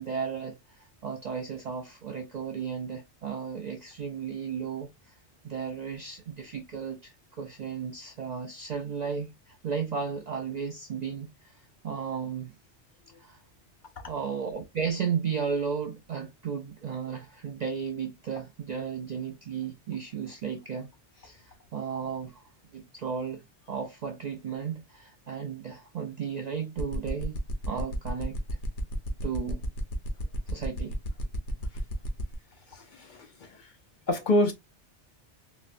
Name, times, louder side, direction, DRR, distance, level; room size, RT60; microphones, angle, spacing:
voice 1, 0.0-5.2 5.4-12.5 13.2-13.4 14.1-27.4 27.7-28.4 29.2-29.6 30.5-31.0, right 6 dB, 60° right, 0.4 m, -34 dB
sound 1, 26.8-32.4, left 1 dB, 85° left, 1.0 m, -33 dB
voice 2, 32.7-33.8 34.1-34.5, left 1 dB, 55° left, 0.6 m, -28 dB
4.0 x 2.1 x 2.4 m
omnidirectional pair, 1.2 m